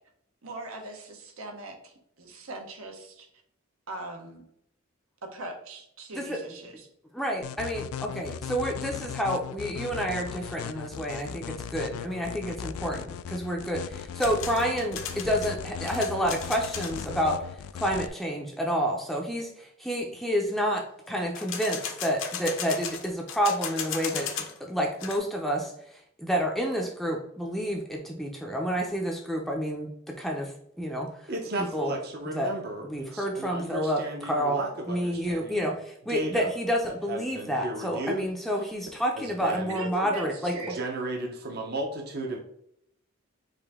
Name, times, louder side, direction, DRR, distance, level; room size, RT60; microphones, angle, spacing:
voice 1, 0.4-3.3 3.9-4.4 5.2-6.9 39.7-40.8, right 2 dB, 85° right, 4 dB, 1.0 m, -40 dB
voice 2, 7.1-17.4 17.7-24.3 24.6-25.7 26.2-30.5 30.8-31.1 31.6-31.9 32.3-32.5 32.8-34.6 34.9-40.5, equal, ahead, 0 dB, 0.5 m, -29 dB
sound 1, 7.4-18.1, left 8 dB, 90° left, 0.3 m, -38 dB
sound 2, 14.2-17.1 21.3-24.6 24.9-25.2, left 7 dB, 65° left, 0.7 m, -36 dB
voice 3, 31.3-35.7 36.1-36.5 36.9-38.3 39.2-39.9 40.7-42.4, right 1 dB, 50° right, 2 dB, 0.7 m, -35 dB
5.0 x 2.6 x 3.5 m, 0.72 s
head